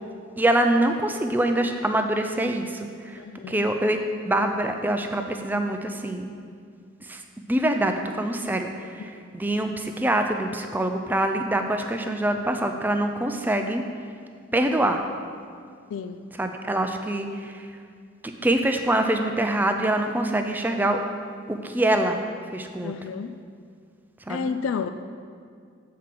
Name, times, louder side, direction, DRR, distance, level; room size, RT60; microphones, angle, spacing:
voice 1, 0.4-3.2 3.5-6.3 7.0-7.2 7.5-13.8 14.5-15.0 16.3-17.7 18.2-21.0 21.5-22.2 22.5-22.9 24.3-24.5, right 1 dB, 10° right, 5 dB, 0.4 m, -25 dB
voice 2, 3.2-3.7 15.9-16.3 22.8-23.3 24.3-24.9, left 6 dB, 75° left, 10 dB, 0.3 m, -31 dB
7.4 x 4.7 x 5.9 m, 2.2 s
head